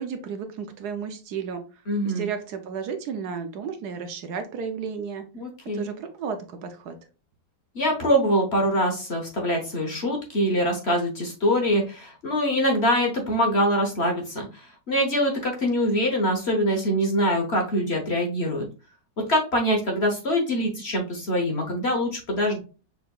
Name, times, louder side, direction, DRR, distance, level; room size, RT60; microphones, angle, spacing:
voice 1, 0.0-5.2 5.7-7.0, right 6 dB, 70° right, 7 dB, 1.1 m, -33 dB
voice 2, 1.9-2.3 5.4-5.9 7.7-18.7 19.3-22.6, equal, 45° left, 2 dB, 1.1 m, -24 dB
6.5 x 3.5 x 2.3 m, 0.34 s
omnidirectional pair, 1.9 m